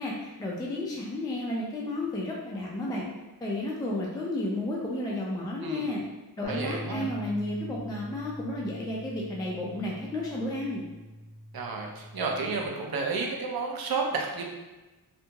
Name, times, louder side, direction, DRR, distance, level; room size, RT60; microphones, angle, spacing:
voice 1, 0.0-3.0 3.4-6.0 6.4-10.8, left 1 dB, 10° left, -4 dB, 0.3 m, -32 dB
voice 2, 5.6-6.0 6.4-7.1 11.5-14.5, right 4 dB, 65° right, 1 dB, 0.6 m, -31 dB
sound 1, 6.4-12.7, equal, 25° left, 1.3 m, -43 dB
2.9 x 2.7 x 2.2 m, 1.1 s
wide cardioid pair, 110°, 39 cm